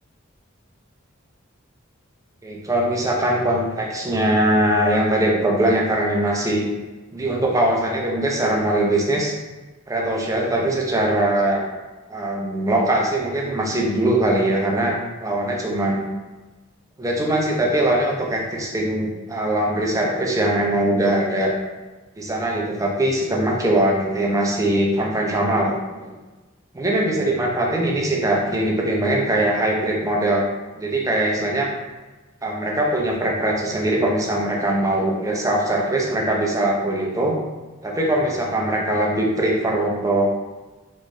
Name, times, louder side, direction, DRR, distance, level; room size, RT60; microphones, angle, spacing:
voice 1, 2.4-6.6 7.1-9.3 9.9-11.6 12.1-16.0 17.0-21.5 22.2-26.1 26.7-30.4 30.7-31.7 32.4-37.4 37.8-40.3, right 1 dB, 15° right, -2 dB, 0.6 m, -21 dB
3.8 x 3.1 x 2.5 m, 1.2 s
head